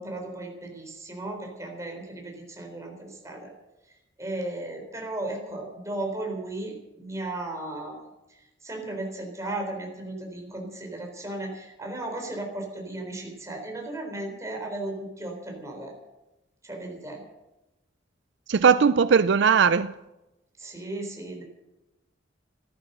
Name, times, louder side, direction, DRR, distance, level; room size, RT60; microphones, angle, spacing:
voice 1, 0.0-3.5 4.2-8.0 8.6-15.9 16.6-17.2 20.6-21.4, right 2 dB, 15° right, 4.0 m, -35 dB
voice 2, 18.5-19.9, right 6 dB, 65° right, 0.4 m, -19 dB
15.5 x 13.0 x 6.7 m
head